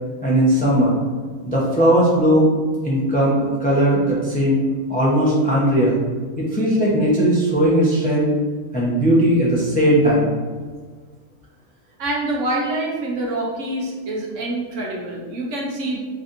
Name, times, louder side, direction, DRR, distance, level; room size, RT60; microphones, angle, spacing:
voice 1, 0.2-0.9 1.4-2.5 2.8-4.6 4.9-6.0 6.4-8.3 8.7-10.3, right 1 dB, 10° left, -6 dB, 0.4 m, -18 dB
voice 2, 12.0-16.0, right 1 dB, 60° right, -2 dB, 0.9 m, -26 dB
4.0 x 3.3 x 2.5 m, 1.5 s
omnidirectional pair, 1.5 m